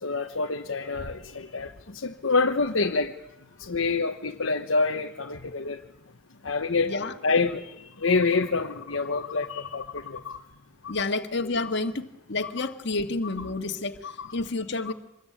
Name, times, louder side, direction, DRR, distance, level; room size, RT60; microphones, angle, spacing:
voice 1, 0.0-3.1 3.6-5.8 6.4-6.9 7.2-10.4 10.8-10.9 12.6-12.7 14.0-14.3, left 4 dB, 75° left, 3 dB, 1.1 m, -27 dB
voice 2, 6.8-7.1 10.9-14.9, left 3 dB, 60° left, 6 dB, 1.8 m, -30 dB
25.5 x 21.0 x 8.9 m, 0.88 s
head